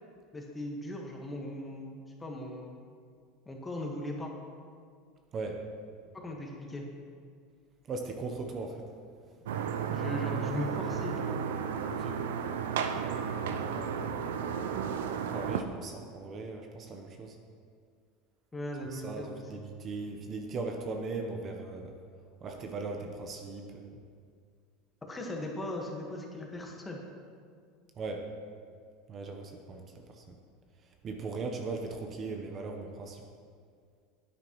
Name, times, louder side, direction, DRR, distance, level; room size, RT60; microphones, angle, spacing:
voice 1, 0.3-2.8 3.4-4.3 6.1-6.9 9.9-11.4 18.5-19.4 25.1-27.0, left 1 dB, 15° left, 0 dB, 1.5 m, -38 dB
voice 2, 7.9-8.8 11.9-12.2 13.6-13.9 15.3-17.4 18.9-21.9 22.4-24.0 28.0-28.2 29.1-29.8 30.1-30.2 31.0-33.2, right 3 dB, 35° right, 3 dB, 0.9 m, -38 dB
sound 1, 9.5-15.6, right 7 dB, 85° right, 0.5 m, -33 dB
9.5 x 9.0 x 3.1 m, 2.1 s
supercardioid pair, 105°, 0 cm